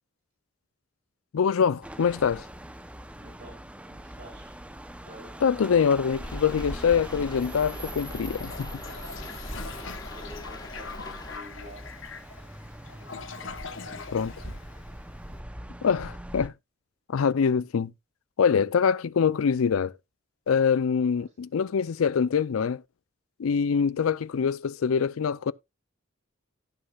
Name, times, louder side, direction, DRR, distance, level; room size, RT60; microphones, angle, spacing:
voice 1, 1.3-2.5 5.4-8.7 14.1-14.3 15.8-16.5 17.1-17.9 18.4-19.9 20.5-22.8 23.4-25.5, left 6 dB, 85° left, 0.4 m, -24 dB
sound 1, 1.8-16.5, right 1 dB, 5° right, 0.7 m, -42 dB
voice 2, 3.2-3.6 3.9-4.6 4.9-5.4 9.5-11.9 12.9-14.5 15.1-15.4 21.1-21.3, equal, 50° right, 5.8 m, -50 dB
sound 2, 6.1-11.4, left 1 dB, 20° left, 1.3 m, -42 dB
Toilet flush, 8.3-15.3, left 5 dB, 65° left, 1.0 m, -42 dB
17.0 x 6.5 x 2.4 m
head